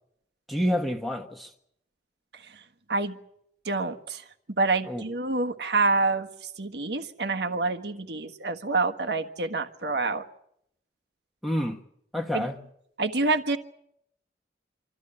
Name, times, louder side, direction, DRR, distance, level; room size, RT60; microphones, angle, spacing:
voice 1, 0.5-1.5 4.8-5.0 11.4-11.8 12.1-12.6, equal, ahead, 1.3 m, -28 dB
voice 2, 3.6-4.2 4.6-6.3 6.6-10.2 12.3-12.5 13.0-13.6, right 3 dB, 70° right, 1.5 m, -27 dB
26.0 x 14.0 x 9.9 m
head